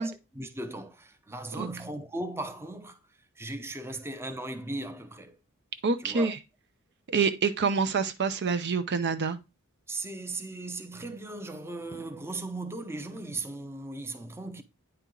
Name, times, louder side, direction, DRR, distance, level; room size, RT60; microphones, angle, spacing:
voice 1, 0.0-3.0 3.4-5.4 6.0-6.3 9.9-14.6, right 2 dB, 10° right, 0.6 m, -37 dB
voice 2, 5.8-6.4 7.1-9.4, right 5 dB, 50° right, 0.6 m, -27 dB
9.2 x 4.4 x 3.8 m
head